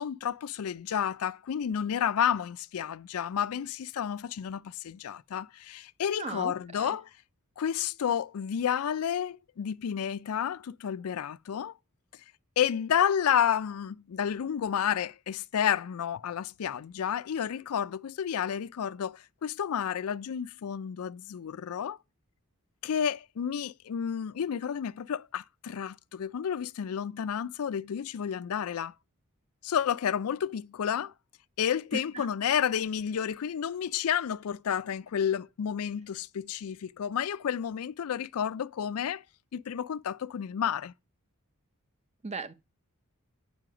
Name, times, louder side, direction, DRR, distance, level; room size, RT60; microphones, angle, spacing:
voice 1, 0.0-7.1 7.6-11.7 12.6-22.0 22.8-28.9 29.6-31.1 31.6-39.2 39.5-40.9, left 8 dB, 80° left, 0.4 m, -31 dB
voice 2, 6.2-6.9 31.9-32.3 42.2-42.5, right 4 dB, 30° right, 0.6 m, -37 dB
9.1 x 5.6 x 4.8 m
head